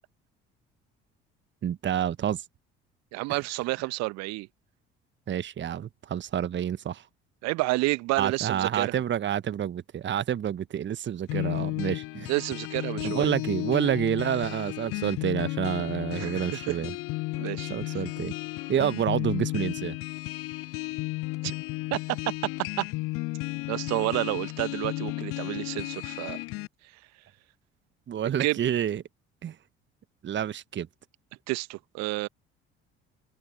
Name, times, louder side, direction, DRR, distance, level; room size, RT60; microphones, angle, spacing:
voice 1, 1.6-2.4 3.3-3.4 5.3-7.0 8.2-12.3 13.0-16.9 17.7-18.3 18.7-20.0 28.1-29.0 29.4-29.5 30.2-30.9, right 9 dB, 35° right, 1.3 m, -28 dB
voice 2, 3.1-4.5 7.4-8.9 12.3-13.3 16.1-16.8 17.4-18.0 21.4-21.5 21.9-22.2 22.8-22.9 23.7-26.4 28.4-28.6 31.5-32.3, right 22 dB, 60° right, 1.3 m, -30 dB
sound 1, 11.3-26.7, left 22 dB, 45° left, 0.4 m, -33 dB
figure-of-eight pair, 50°, 31 cm